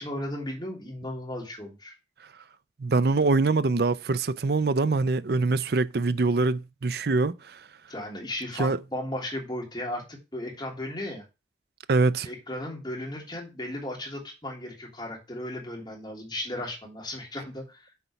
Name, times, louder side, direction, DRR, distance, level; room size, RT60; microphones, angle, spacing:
voice 1, 0.0-1.9 7.9-11.2 12.2-17.9, left 1 dB, 25° left, 3.1 m, -35 dB
voice 2, 2.8-7.3 8.6-8.8 11.9-12.3, right 3 dB, 55° right, 0.5 m, -24 dB
8.0 x 4.5 x 6.8 m
head